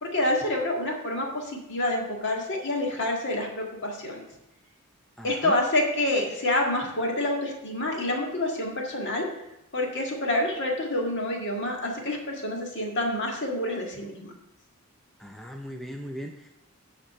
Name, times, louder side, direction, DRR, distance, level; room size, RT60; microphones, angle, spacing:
voice 1, 0.0-4.2 5.2-9.2 9.7-14.3, left 1 dB, 55° left, 0 dB, 1.8 m, -27 dB
voice 2, 5.2-5.6 15.2-16.5, equal, ahead, 3 dB, 0.4 m, -38 dB
7.4 x 5.1 x 6.7 m, 0.89 s
head